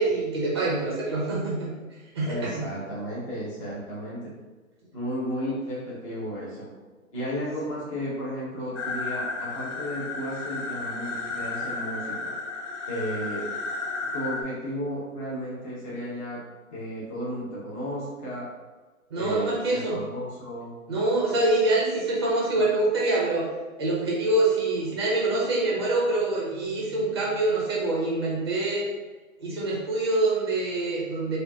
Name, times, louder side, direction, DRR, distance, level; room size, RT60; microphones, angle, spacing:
voice 1, 0.0-1.7 2.1-2.5 19.1-20.0 20.9-23.5 23.8-28.9 29.4-31.4, right 2 dB, 20° right, -5 dB, 0.6 m, -25 dB
voice 2, 2.3-4.3 4.9-6.7 7.1-12.3 12.9-13.5 14.1-16.4 16.7-18.5 19.1-20.7, equal, 25° left, -8 dB, 0.9 m, -33 dB
sound 1, 8.7-14.4, left 3 dB, 55° left, 0.8 m, -33 dB
4.7 x 2.5 x 2.7 m, 1.3 s
hypercardioid pair, 165°, 43 cm